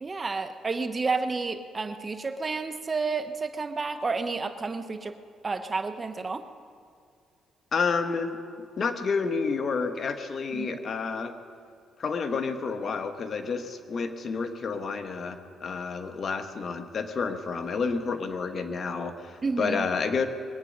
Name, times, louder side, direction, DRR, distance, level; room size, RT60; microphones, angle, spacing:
voice 1, 0.0-5.1 5.4-6.4 10.5-10.8 19.4-19.9, right 4 dB, 30° right, 9 dB, 0.9 m, -30 dB
voice 2, 7.7-8.4 8.8-11.3 12.0-20.3, left 5 dB, 50° left, 8 dB, 1.2 m, -30 dB
22.0 x 9.2 x 6.6 m, 2.2 s
cardioid pair, 90°, 0 cm